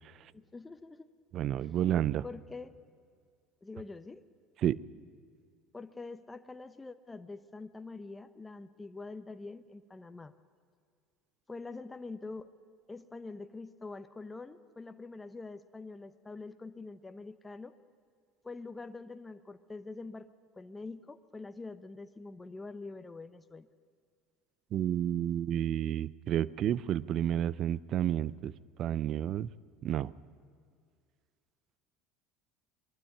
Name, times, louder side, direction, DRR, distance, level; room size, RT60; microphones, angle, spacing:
voice 1, 0.3-1.1 1.6-1.8 2.2-2.7 3.6-4.3 5.7-10.3 11.5-12.5 12.9-17.8 18.4-20.3 20.6-23.7, left 3 dB, 15° left, 10 dB, 0.8 m, -45 dB
voice 2, 1.3-2.2 4.6-4.8 24.7-28.5 28.8-29.5 29.8-30.1, right 11 dB, 50° right, 20 dB, 0.5 m, -30 dB
22.0 x 12.5 x 10.0 m, 2.1 s
supercardioid pair, 100°, 0 cm